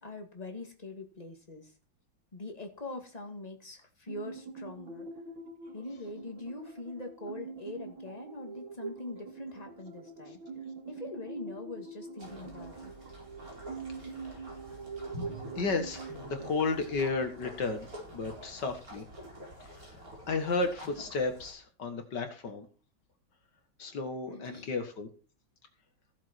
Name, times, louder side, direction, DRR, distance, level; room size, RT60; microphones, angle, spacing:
voice 1, 0.0-1.7 2.3-5.1 5.7-10.4 10.9-12.9 24.3-24.7, left 2 dB, 20° left, 4 dB, 2.1 m, -43 dB
sound 1, 4.1-18.5, right 4 dB, 85° right, 2.7 m, -45 dB
sound 2, 12.2-21.5, equal, 45° right, 4.9 m, -47 dB
voice 2, 15.6-17.9 18.1-19.0 20.3-22.7 23.8-25.1, left 3 dB, 60° left, 7 dB, 2.2 m, -33 dB
15.5 x 7.3 x 4.6 m, 0.37 s
omnidirectional pair, 2.2 m